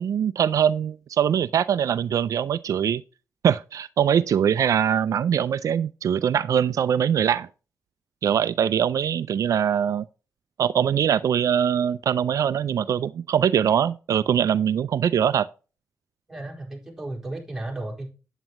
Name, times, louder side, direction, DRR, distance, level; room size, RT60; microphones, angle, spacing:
voice 1, 0.0-3.0 3.4-7.5 8.2-10.0 10.6-15.5, right 8 dB, 80° right, 0.4 m, -22 dB
voice 2, 16.3-18.1, right 2 dB, 10° right, 4.4 m, -34 dB
9.0 x 8.8 x 3.0 m
cardioid pair, 80°, 6 cm